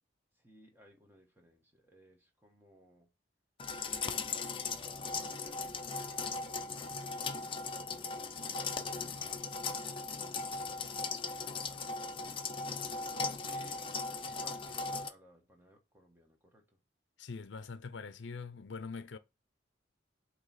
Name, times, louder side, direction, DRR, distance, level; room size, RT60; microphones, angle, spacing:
voice 1, 0.3-3.1 3.8-8.3 8.8-9.6 10.9-12.4 12.9-16.6, equal, 10° right, 1.2 m, -61 dB
sound 1, 3.6-15.1, left 4 dB, 30° left, 0.5 m, -38 dB
voice 2, 17.2-19.2, left 4 dB, 80° left, 0.6 m, -43 dB
7.8 x 3.0 x 4.1 m
head